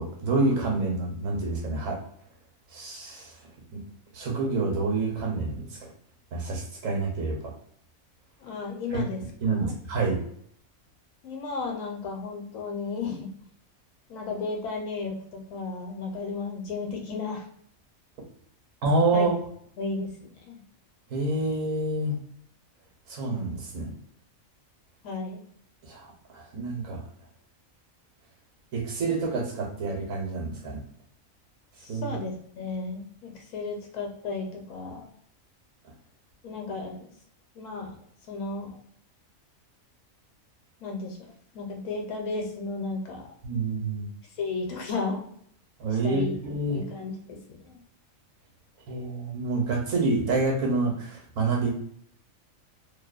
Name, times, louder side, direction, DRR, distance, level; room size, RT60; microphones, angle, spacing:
voice 1, 0.0-2.0 2.7-3.3 3.7-3.8 4.1-5.9 6.3-7.5 8.9-9.0 9.4-10.2 18.8-19.3 21.1-22.1 23.1-23.9 25.9-27.0 28.7-30.8 31.9-32.1 43.4-44.1 45.8-46.8 48.9-51.7, right 3 dB, 70° right, 0 dB, 1.1 m, -28 dB
voice 2, 8.4-9.2 9.5-9.7 11.2-13.3 14.1-17.4 19.1-19.3 19.8-20.6 25.0-25.4 31.8-35.1 36.4-37.1 37.5-37.9 38.3-38.8 40.8-41.2 41.5-43.3 44.4-45.3 46.0-46.3 46.7-47.8, left 4 dB, 70° left, 1 dB, 1.0 m, -34 dB
2.7 x 2.1 x 2.3 m, 0.65 s
omnidirectional pair, 1.4 m